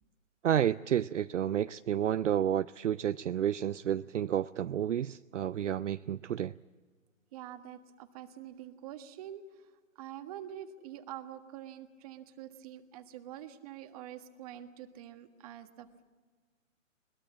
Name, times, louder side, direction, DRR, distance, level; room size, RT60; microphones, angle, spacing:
voice 1, 0.4-6.5, right 10 dB, 65° right, 13 dB, 0.6 m, -30 dB
voice 2, 7.3-9.7 9.9-16.0, right 11 dB, 30° right, 7 dB, 1.6 m, -46 dB
22.0 x 21.0 x 7.4 m, 1.5 s
hypercardioid pair, 145°, 40 cm